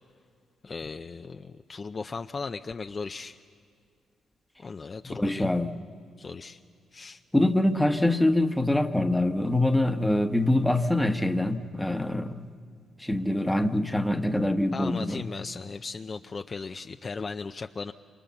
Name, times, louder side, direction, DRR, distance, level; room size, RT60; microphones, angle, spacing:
voice 1, 0.6-3.4 4.6-5.5 6.2-6.6 6.9-7.2 14.7-17.9, left 4 dB, 35° left, 7 dB, 0.6 m, -37 dB
voice 2, 5.0-5.8 7.3-12.4 13.0-15.2, left 1 dB, 5° left, 7 dB, 1.1 m, -24 dB
27.5 x 24.5 x 7.1 m, 2.3 s
cardioid pair, 90°, 0 cm